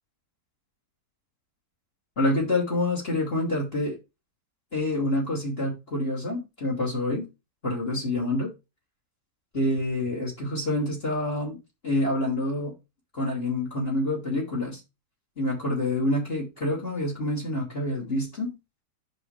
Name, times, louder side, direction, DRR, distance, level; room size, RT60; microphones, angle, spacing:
voice 1, 2.2-4.0 4.7-7.3 7.6-8.5 9.5-11.6 11.8-12.7 13.1-14.8 15.4-18.6, left 1 dB, 30° left, 3.2 m, -27 dB
7.8 x 6.4 x 3.3 m
omnidirectional pair, 1.9 m